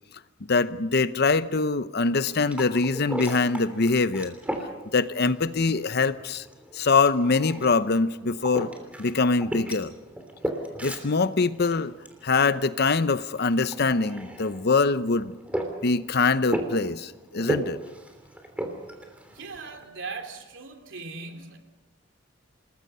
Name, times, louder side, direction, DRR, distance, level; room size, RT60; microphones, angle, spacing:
voice 1, 0.5-4.3 4.9-6.4 6.7-8.7 9.0-9.9 10.8-11.9 12.2-15.3 15.8-17.8, left 4 dB, 55° left, 0.8 m, -23 dB
sound 1, 2.0-19.9, right 1 dB, 5° right, 3.2 m, -37 dB
voice 2, 19.3-21.6, right 4 dB, 70° right, 3.0 m, -39 dB
28.0 x 20.5 x 5.6 m
head